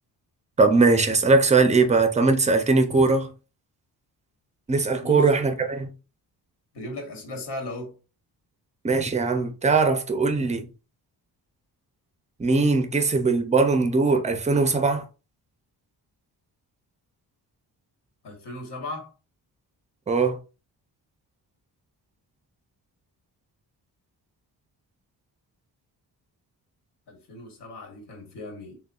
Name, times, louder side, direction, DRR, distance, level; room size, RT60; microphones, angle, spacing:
voice 1, 0.6-3.3 4.7-5.9 8.8-10.7 12.4-15.0 20.1-20.4, right 3 dB, 20° right, 0.4 m, -20 dB
voice 2, 6.7-8.0 18.2-19.1 27.1-28.8, left 1 dB, 90° left, 1.4 m, -37 dB
6.3 x 2.1 x 2.3 m
wide cardioid pair, 180°, 40 cm